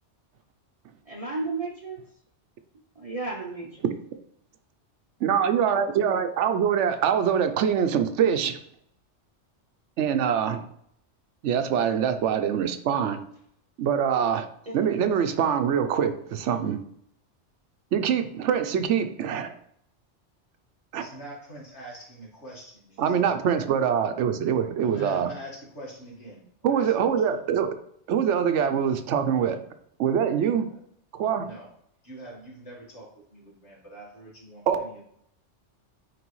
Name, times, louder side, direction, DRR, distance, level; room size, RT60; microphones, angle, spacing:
voice 1, 1.1-2.0 3.0-3.8 14.6-14.9, right 3 dB, 40° right, 0 dB, 0.6 m, -33 dB
voice 2, 5.2-8.6 10.0-10.6 11.4-13.2 13.8-14.4 14.7-16.8 17.9-19.5 20.9-21.1 23.0-25.3 26.6-27.7 28.1-29.6 30.0-30.7 31.2-31.5 34.7-34.8, right 8 dB, 80° right, 8 dB, 0.9 m, -24 dB
voice 3, 20.9-24.1 24.8-27.2 30.7-30.8 31.4-31.7 32.0-35.0, right 1 dB, 70° left, -3 dB, 2.1 m, -45 dB
9.2 x 3.3 x 3.1 m, 0.69 s
omnidirectional pair, 1.2 m